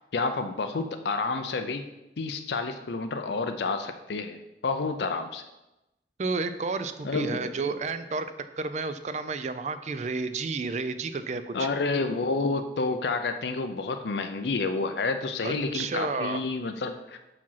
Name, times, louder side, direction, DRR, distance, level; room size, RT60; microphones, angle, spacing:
voice 1, 0.1-1.9 2.2-5.4 7.0-7.5 11.5-17.2, left 3 dB, 75° left, 7 dB, 0.5 m, -29 dB
voice 2, 6.2-8.3 8.6-11.7 15.4-16.4, right 4 dB, 40° right, 11 dB, 0.4 m, -31 dB
6.0 x 4.9 x 5.6 m, 0.96 s
head